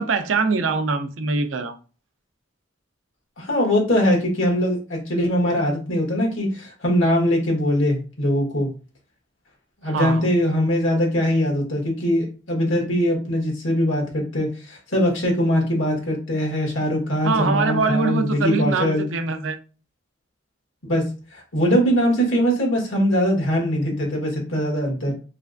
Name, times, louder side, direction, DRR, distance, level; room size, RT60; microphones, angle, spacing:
voice 1, 0.0-1.8 9.8-10.3 17.2-19.6, right 4 dB, 90° right, 0.5 m, -23 dB
voice 2, 3.4-8.7 9.8-19.0 20.8-21.0 21.3-25.1, equal, 85° left, 1.4 m, -21 dB
3.2 x 3.2 x 2.5 m
head